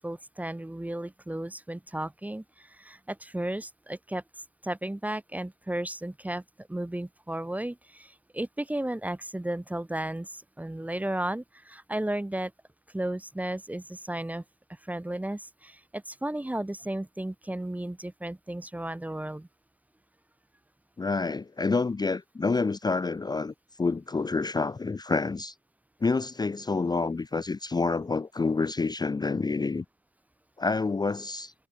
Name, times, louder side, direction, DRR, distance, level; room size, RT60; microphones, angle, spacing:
voice 1, 0.0-4.2 4.6-12.5 12.9-14.4 14.8-19.5, right 1 dB, 10° right, 0.9 m, -34 dB
voice 2, 21.0-25.5 26.0-29.8 30.6-31.5, left 4 dB, 20° left, 0.7 m, -28 dB
cardioid pair, 90°, 20 cm